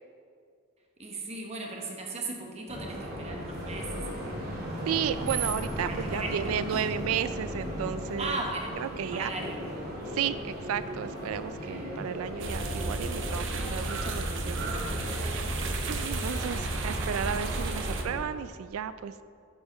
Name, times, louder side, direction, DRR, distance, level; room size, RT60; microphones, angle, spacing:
voice 1, 1.0-4.5 5.9-6.8 8.2-9.6, right 2 dB, 30° right, 1 dB, 1.3 m, -37 dB
sound 1, 2.7-18.2, equal, 45° right, 2.2 m, -37 dB
voice 2, 4.9-8.4 8.8-9.3 10.1-15.6 15.9-19.2, right 8 dB, 80° right, 14 dB, 0.3 m, -33 dB
sound 2, 12.4-18.0, right 2 dB, 60° right, 1.0 m, -32 dB
9.0 x 5.5 x 6.6 m, 2.3 s
head